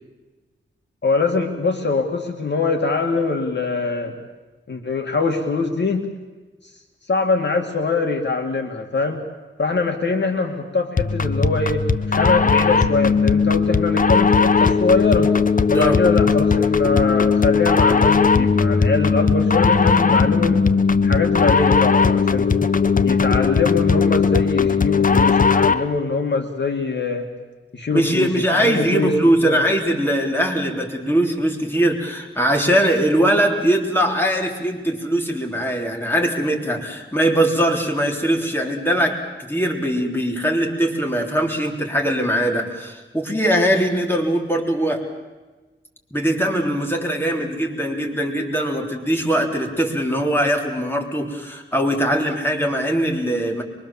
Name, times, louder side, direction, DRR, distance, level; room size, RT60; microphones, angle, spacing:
voice 1, 1.0-4.1 4.7-6.1 7.1-9.2 9.6-15.3 15.7-20.6 21.0-22.5 23.0-27.3 27.7-29.6, left 3 dB, 60° left, 4 dB, 2.3 m, -23 dB
sound 1, 11.0-25.9, left 5 dB, 40° left, 0.9 m, -17 dB
voice 2, 27.9-45.1 46.1-53.6, right 1 dB, 10° left, 1 dB, 3.6 m, -21 dB
24.0 x 23.5 x 7.2 m, 1.2 s
wide cardioid pair, 85°, 21 cm